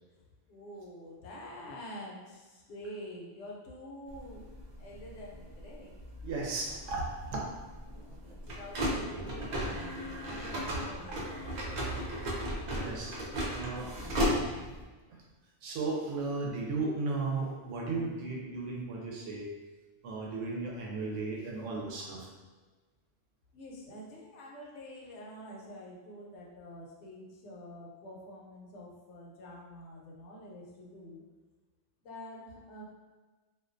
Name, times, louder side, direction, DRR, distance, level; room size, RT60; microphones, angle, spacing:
voice 1, 0.5-4.4 4.8-5.9 8.0-11.4 11.7-11.8 14.0-14.8 23.5-31.2 32.0-32.8, left 1 dB, 75° left, -3 dB, 0.9 m, -47 dB
sound 1, 4.1-14.8, equal, 60° right, 0.4 m, -36 dB
voice 2, 6.2-7.5 7.8-8.4 10.2-10.4 10.7-10.8 11.1-11.2 12.7-13.2 13.5-14.1 15.1-15.2 15.6-19.5 20.0-22.3, right 3 dB, 90° right, -2 dB, 0.9 m, -35 dB
2.4 x 2.2 x 2.4 m, 1.3 s
omnidirectional pair, 1.2 m